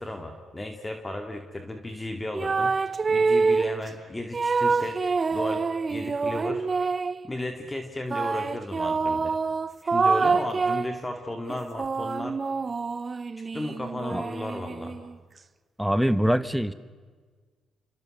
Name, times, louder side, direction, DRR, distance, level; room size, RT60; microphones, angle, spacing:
voice 1, 0.0-2.8 3.1-5.0 5.3-6.7 7.2-9.4 9.8-12.4 13.4-15.0, left 1 dB, 15° left, 5 dB, 2.4 m, -34 dB
sound 1, 2.3-3.8 4.3-7.2 8.1-11.0 11.5-15.1, right 4 dB, 35° right, 0.8 m, -26 dB
voice 2, 15.8-16.7, equal, ahead, 14 dB, 1.2 m, -23 dB
29.5 x 25.0 x 6.6 m, 1.5 s
cardioid pair, 90°, 0 cm